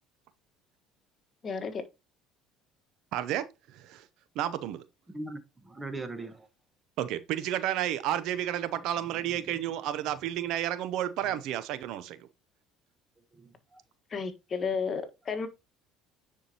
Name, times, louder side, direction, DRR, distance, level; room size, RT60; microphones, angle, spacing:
voice 1, 1.4-1.8 14.1-15.5, left 5 dB, 35° left, 1.4 m, -32 dB
voice 2, 3.1-3.4 3.7-4.0 4.4-4.8 7.0-12.2, right 11 dB, 70° right, 0.7 m, -31 dB
voice 3, 5.1-6.5 9.1-9.6 10.1-10.2 11.2-11.3 13.3-13.8, right 2 dB, 15° right, 1.3 m, -41 dB
9.3 x 4.6 x 2.9 m
supercardioid pair, 95°, 0 cm